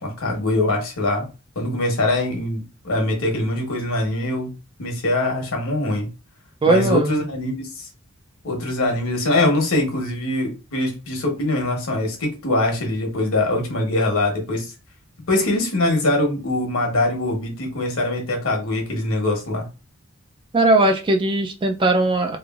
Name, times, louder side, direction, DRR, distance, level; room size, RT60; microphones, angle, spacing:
voice 1, 0.0-1.3 1.5-4.5 4.8-6.1 6.7-7.9 8.4-14.7 15.3-19.7, left 2 dB, 70° left, 1.1 m, -23 dB
voice 2, 6.6-7.2 20.5-22.4, right 2 dB, 25° right, 0.3 m, -18 dB
3.0 x 2.5 x 2.4 m
head